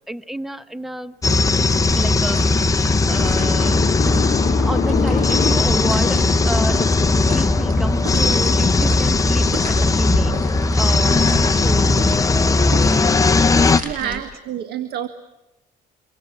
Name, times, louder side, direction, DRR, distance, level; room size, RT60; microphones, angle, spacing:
voice 1, 0.1-1.2 2.0-4.0 4.6-10.3 10.7-12.2 12.8-13.2 14.0-14.2, right 1 dB, ahead, 13 dB, 1.1 m, -30 dB
sound 1, 1.2-13.8, left 3 dB, 20° left, 0.8 m, -18 dB
sound 2, 1.7-14.2, right 2 dB, 55° right, 7.5 m, -33 dB
sound 3, 3.1-13.5, left 7 dB, 40° left, 1.5 m, -29 dB
voice 2, 13.8-15.1, right 10 dB, 70° right, 10 dB, 1.8 m, -28 dB
26.0 x 24.5 x 7.2 m, 0.95 s
cardioid pair, 110°, 17 cm